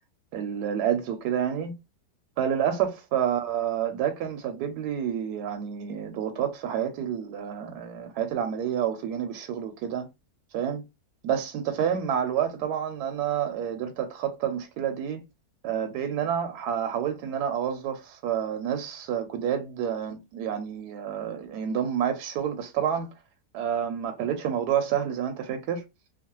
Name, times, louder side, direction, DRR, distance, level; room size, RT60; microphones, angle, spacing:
voice 1, 0.3-1.7 2.4-10.1 10.5-10.8 11.2-15.2 15.6-23.1 23.5-25.8, right 9 dB, 85° right, 1.2 m, -29 dB
3.0 x 2.1 x 2.9 m
omnidirectional pair, 1.7 m